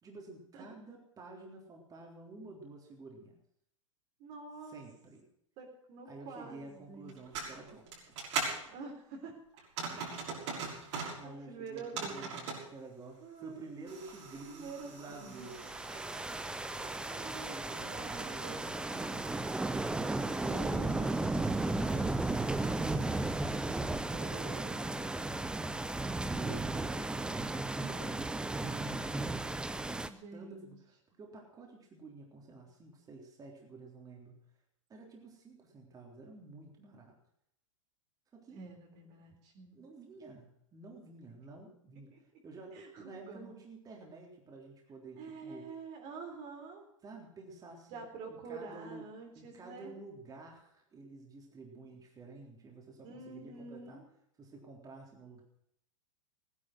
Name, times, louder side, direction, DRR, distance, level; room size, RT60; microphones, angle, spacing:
voice 1, 0.0-3.4 4.6-5.2 6.1-7.9 9.9-10.1 10.8-15.6 17.3-19.4 19.7-25.0 26.4-29.5 30.3-34.4 34.9-37.1 38.3-38.6 39.7-45.7 47.0-49.1 49.4-54.0 54.4-55.4, right 3 dB, 20° right, 0 dB, 3.7 m, -51 dB
voice 2, 4.2-4.8 5.6-7.1 8.6-9.7 10.4-10.6 11.2-12.3 13.2-13.9 14.5-16.2 16.7-18.7 20.5-21.3 24.1-24.7 30.1-30.8 38.5-39.8 42.1-42.2 42.7-43.5 45.2-46.8 47.9-49.9 53.0-54.0, right 4 dB, 45° right, 1 dB, 3.9 m, -47 dB
sound 1, 7.1-8.6 9.6-11.2 11.7-12.6 13.9-23.8, right 4 dB, 60° right, 6.3 m, -43 dB
sound 2, 15.4-30.1, right 2 dB, 5° right, 0.7 m, -35 dB
16.5 x 10.5 x 6.3 m, 0.74 s
hypercardioid pair, 100°, 17 cm